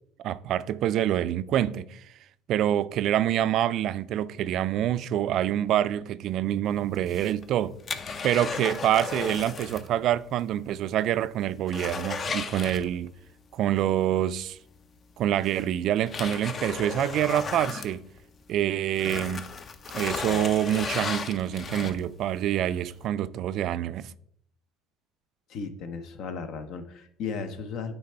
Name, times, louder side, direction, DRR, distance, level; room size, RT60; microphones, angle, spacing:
voice 1, 0.2-2.0 2.5-7.7 8.2-13.1 13.5-14.6 15.2-18.0 18.5-19.4 19.9-24.1, right 11 dB, 60° right, 0.3 m, -26 dB
sound 1, 6.9-9.9 10.2-10.3 10.8-10.9 11.2-13.3 14.7-14.8 15.4-18.5 18.9-22.2 22.7-22.8, left 5 dB, 35° left, 0.6 m, -35 dB
voice 2, 25.5-27.9, left 5 dB, 60° left, 0.8 m, -35 dB
8.7 x 3.4 x 4.4 m
supercardioid pair, 105°, 0 cm